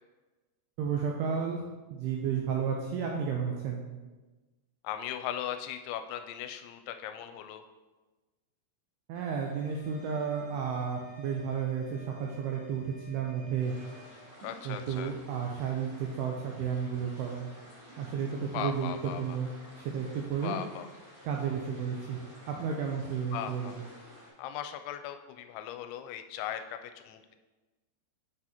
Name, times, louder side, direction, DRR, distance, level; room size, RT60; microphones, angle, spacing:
voice 1, 0.8-1.6 1.9-3.9 9.1-13.7 14.6-17.5 18.0-19.5 19.8-20.6 21.2-22.2 22.5-23.8, right 7 dB, 85° right, 0 dB, 2.3 m, -32 dB
voice 2, 4.8-7.6 14.4-15.1 18.5-19.4 20.4-20.9 23.3-23.8 24.4-27.4, left 10 dB, 85° left, 8 dB, 2.9 m, -38 dB
sound 1, 9.1-14.2, left 7 dB, 55° left, 2.1 m, -53 dB
sound 2, 13.6-24.3, equal, 50° right, 0.9 m, -52 dB
7.7 x 6.3 x 2.9 m, 1.2 s
omnidirectional pair, 5.2 m